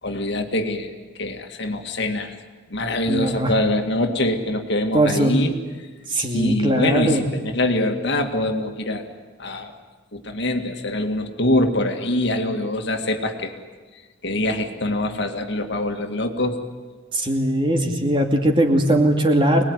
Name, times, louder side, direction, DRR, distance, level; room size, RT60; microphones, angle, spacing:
voice 1, 0.0-0.9 1.2-2.3 2.7-5.6 6.3-9.1 9.4-9.7 10.1-13.5 14.2-16.6, left 1 dB, 55° left, 5 dB, 2.1 m, -24 dB
voice 2, 3.1-3.5 4.9-5.3 6.1-7.3 17.1-19.7, right 1 dB, 25° right, 3 dB, 2.5 m, -20 dB
25.5 x 20.5 x 9.6 m, 1.4 s
head